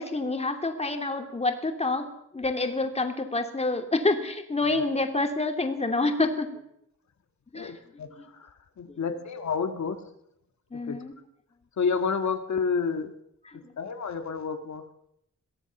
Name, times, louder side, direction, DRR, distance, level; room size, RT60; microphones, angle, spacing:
voice 1, 0.0-2.1 2.3-6.5 7.5-7.7 8.2-8.3 8.9-9.0 10.7-11.1 13.5-13.7, left 2 dB, 20° left, 5 dB, 2.7 m, -28 dB
voice 2, 7.5-8.5 8.8-10.0 10.9-11.0 11.8-13.1 13.8-14.8, left 5 dB, 65° left, 6 dB, 1.8 m, -29 dB
22.5 x 17.0 x 7.1 m, 0.76 s
wide cardioid pair, 130°, 30 cm